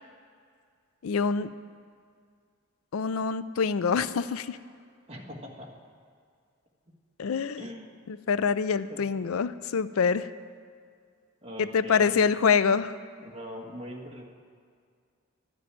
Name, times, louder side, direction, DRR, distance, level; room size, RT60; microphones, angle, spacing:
voice 1, 1.0-1.5 2.9-4.6 7.2-7.6 8.1-10.3 11.6-12.9, left 6 dB, 80° left, 14 dB, 0.4 m, -25 dB
voice 2, 5.1-5.7 7.6-7.9 8.9-9.0 11.4-12.2 13.2-14.2, equal, 30° right, -1 dB, 1.6 m, -41 dB
12.0 x 6.9 x 9.6 m, 2.1 s
head